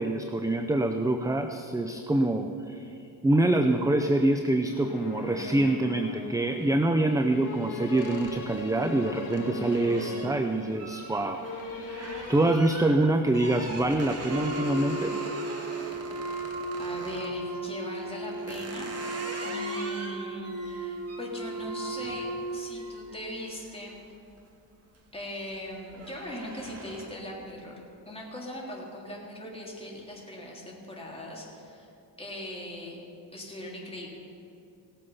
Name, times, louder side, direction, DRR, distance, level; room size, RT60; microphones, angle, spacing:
voice 1, 0.0-2.9 3.2-15.2, right 2 dB, 10° right, 7 dB, 0.5 m, -26 dB
sound 1, 4.6-12.6, left 2 dB, 45° left, 2.2 m, -39 dB
sound 2, 8.0-17.3 17.9-24.4 24.8-25.2 25.5-27.3, right 2 dB, 35° right, 2.1 m, -42 dB
Wind instrument woodwind instrument, 14.3-23.1, right 2 dB, 65° right, 1.2 m, -35 dB
voice 2, 16.8-19.1 19.4-24.0 25.1-27.7 28.0-31.9 32.2-33.0 33.3-34.1, left 1 dB, 15° left, -3 dB, 3.3 m, -40 dB
18.0 x 7.7 x 5.6 m, 2.6 s
cardioid pair, 90°, 43 cm